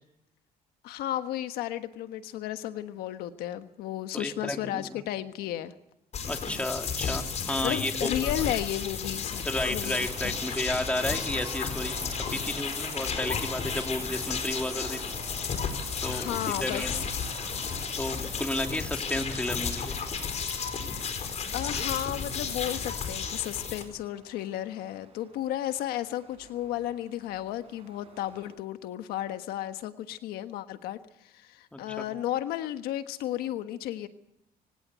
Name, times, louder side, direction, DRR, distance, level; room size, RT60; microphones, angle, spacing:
voice 1, 0.8-5.7 7.6-10.3 16.1-17.0 21.5-34.1, left 12 dB, 90° left, 9 dB, 1.4 m, -33 dB
voice 2, 4.1-5.0 6.3-8.5 9.4-15.0 16.0-17.0 18.0-20.0 31.7-32.0, left 1 dB, 10° left, 5 dB, 2.8 m, -32 dB
sound 1, 6.1-23.8, left 6 dB, 45° left, 4.3 m, -33 dB
sound 2, 9.8-28.5, right 4 dB, 40° right, 6.9 m, -48 dB
25.0 x 17.0 x 8.2 m, 0.81 s
cardioid pair, 115°, 15 cm